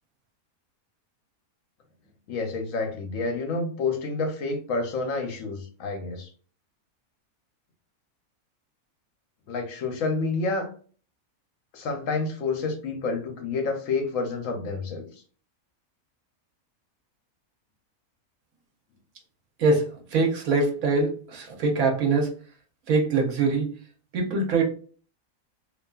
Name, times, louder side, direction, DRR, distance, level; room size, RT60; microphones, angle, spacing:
voice 1, 2.3-6.3 9.5-10.7 11.7-15.1, left 3 dB, 70° left, 4 dB, 1.0 m, -29 dB
voice 2, 20.1-22.3 22.9-23.7 24.1-24.6, right 3 dB, 80° right, 1 dB, 1.2 m, -23 dB
2.7 x 2.6 x 2.3 m, 0.42 s
omnidirectional pair, 1.5 m